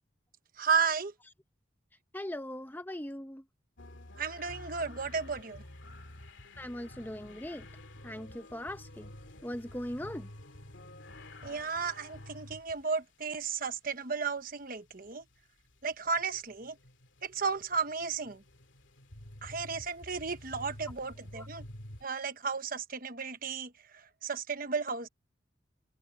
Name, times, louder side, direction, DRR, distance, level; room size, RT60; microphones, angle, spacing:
voice 1, 0.6-1.1 4.2-5.6 11.4-15.2 15.8-16.8 17.2-18.4 19.4-21.6 22.0-25.1, right 5 dB, 45° right, 1.1 m, -34 dB
voice 2, 2.1-3.4 6.6-7.6 8.0-9.1 9.4-10.3 21.3-21.5, left 1 dB, 10° left, 0.8 m, -40 dB
sound 1, 3.8-12.8 14.9-22.1, left 1 dB, 70° left, 2.4 m, -50 dB
head